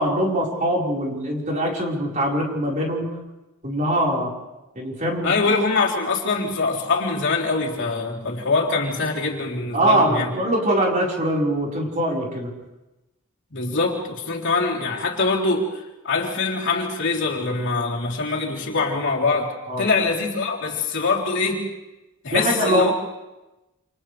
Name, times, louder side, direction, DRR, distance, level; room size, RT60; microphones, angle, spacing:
voice 1, 0.0-3.1 3.6-4.3 4.7-5.3 9.7-12.5 19.7-19.9 22.3-22.9, right 1 dB, 40° right, -2 dB, 4.8 m, -22 dB
voice 2, 5.2-10.3 13.5-21.7 22.2-22.9, left 3 dB, 60° left, -3 dB, 3.7 m, -23 dB
28.5 x 28.0 x 3.4 m, 1.0 s
head